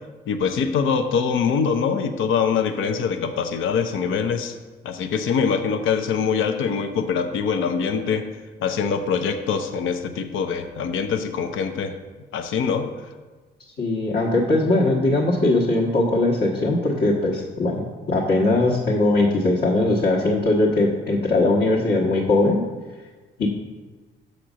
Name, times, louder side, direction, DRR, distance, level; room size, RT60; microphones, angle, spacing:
voice 1, 0.3-4.6 4.8-8.3 8.6-11.9 12.3-12.9, left 6 dB, 80° left, 7 dB, 0.7 m, -23 dB
voice 2, 13.8-17.8 18.1-22.6 23.4-23.5, left 2 dB, 60° left, -4 dB, 1.3 m, -20 dB
6.5 x 4.3 x 6.2 m, 1.3 s
cardioid pair, 90°, 20 cm